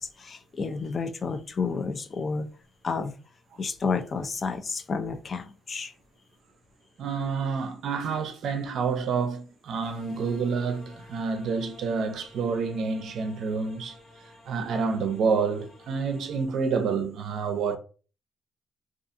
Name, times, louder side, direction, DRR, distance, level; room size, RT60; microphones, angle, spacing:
voice 1, 0.0-2.5 2.8-3.1 3.6-5.9, left 4 dB, 45° left, 0.4 m, -31 dB
voice 2, 7.0-17.8, right 5 dB, 70° right, 0.5 m, -28 dB
sound 1, 9.8-16.4, left 1 dB, 90° left, 0.9 m, -51 dB
2.6 x 2.3 x 2.5 m
cardioid pair, 90°, 0 cm